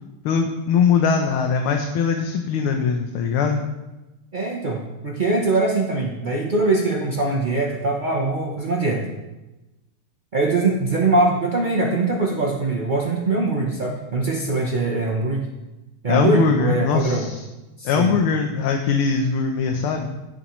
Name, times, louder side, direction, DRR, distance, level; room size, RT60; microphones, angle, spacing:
voice 1, 0.2-3.6 16.1-17.4 17.8-20.1, left 5 dB, 75° left, 4 dB, 1.7 m, -21 dB
voice 2, 4.3-9.1 10.3-15.5 16.0-17.3 17.8-18.1, right 2 dB, 55° right, -1 dB, 0.5 m, -22 dB
16.5 x 6.9 x 3.1 m, 1.1 s
omnidirectional pair, 2.4 m